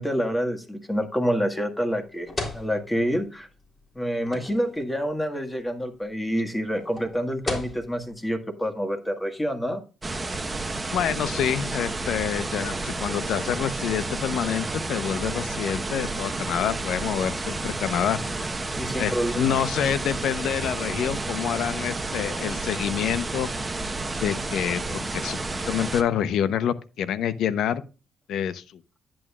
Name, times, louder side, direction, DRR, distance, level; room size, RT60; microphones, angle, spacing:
voice 1, 0.0-2.3 2.5-3.5 4.0-9.8 18.7-19.6, equal, 10° left, 5 dB, 1.8 m, -27 dB
sound 1, 1.9-8.1, left 2 dB, 30° left, 3.2 m, -37 dB
sound 2, 10.0-26.0, right 2 dB, 20° right, 1.0 m, -31 dB
voice 2, 10.9-18.2 19.0-23.5 24.2-25.4 25.7-27.8 28.3-28.6, left 9 dB, 75° left, 15 dB, 0.7 m, -27 dB
10.5 x 8.7 x 2.4 m, 0.32 s
cardioid pair, 85°, 0 cm